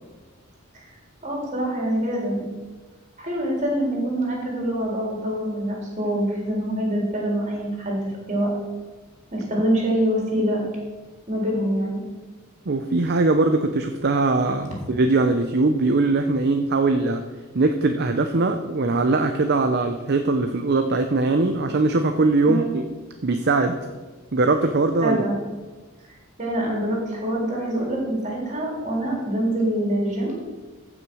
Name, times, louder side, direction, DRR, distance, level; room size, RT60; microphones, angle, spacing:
voice 1, 1.2-2.4 3.2-8.0 8.3-8.5 9.3-10.6 11.3-12.0 22.4-22.6 25.0-25.3 26.4-30.4, right 1 dB, 35° right, -2 dB, 4.0 m, -25 dB
voice 2, 12.7-17.2 17.5-22.9 23.2-23.8 24.3-25.2, right 3 dB, 50° right, 7 dB, 0.7 m, -21 dB
15.0 x 6.2 x 6.3 m, 1.3 s
head